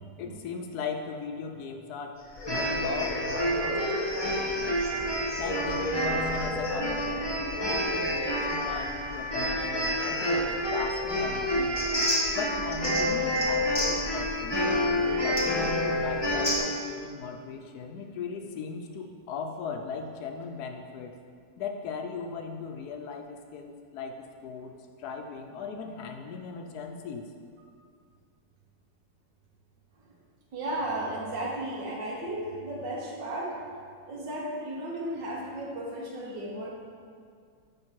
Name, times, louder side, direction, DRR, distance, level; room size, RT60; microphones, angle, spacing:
voice 1, 0.2-2.2 2.5-4.8 5.4-11.8 12.3-14.6 15.2-21.2 21.6-24.7 25.0-27.3, left 5 dB, 70° left, 4 dB, 1.0 m, -38 dB
sound 1, 2.4-16.6, equal, 15° left, 1.0 m, -28 dB
voice 2, 30.5-33.6 34.1-36.7, right 1 dB, 85° right, -3 dB, 1.8 m, -34 dB
6.5 x 5.2 x 4.5 m, 2.2 s
omnidirectional pair, 1.9 m